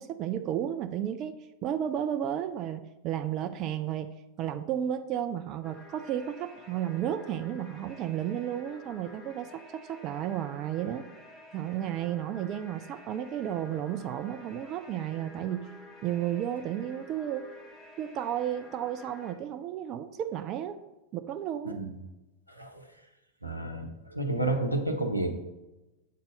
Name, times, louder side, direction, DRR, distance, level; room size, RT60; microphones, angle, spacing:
voice 1, 0.0-1.3 1.6-11.0 11.5-15.7 16.0-17.5 18.0-20.8 21.1-21.8, right 10 dB, 35° right, 9 dB, 0.3 m, -33 dB
sound 1, 5.6-19.3, left 2 dB, 20° left, 1.2 m, -51 dB
voice 2, 22.5-22.8 23.4-25.3, right 2 dB, 90° right, 4 dB, 0.8 m, -30 dB
7.5 x 4.0 x 5.1 m, 1.0 s
figure-of-eight pair, 90°, 0 cm